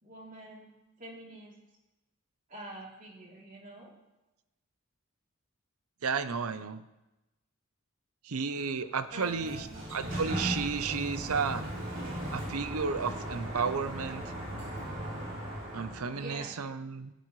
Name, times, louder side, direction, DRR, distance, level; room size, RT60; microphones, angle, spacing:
voice 1, 0.0-1.6 2.5-3.9 9.1-9.8 16.1-16.6, right 1 dB, 35° right, -3 dB, 3.1 m, -46 dB
voice 2, 6.0-6.8 8.2-9.6 9.9-11.6 12.3-14.2 15.7-17.1, right 5 dB, 85° right, 12 dB, 0.7 m, -32 dB
Sliding door, 9.0-16.4, right 1 dB, 60° right, 3.8 m, -38 dB
16.0 x 13.5 x 3.2 m, 1.0 s
head